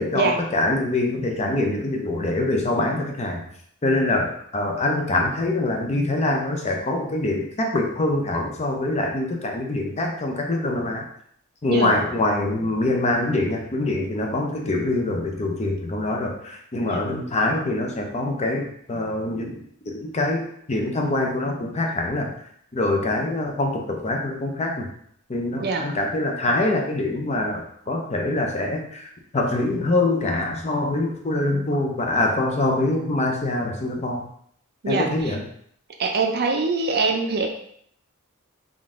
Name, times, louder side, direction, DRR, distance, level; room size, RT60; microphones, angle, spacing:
voice 1, 0.0-3.4 3.8-11.0 11.6-22.3 22.7-24.9 25.3-34.3 34.9-35.4, left 2 dB, 30° left, 2 dB, 0.6 m, -24 dB
voice 2, 34.8-35.4 36.0-37.5, right 3 dB, 50° right, 3 dB, 0.5 m, -24 dB
3.8 x 2.5 x 3.6 m, 0.67 s
head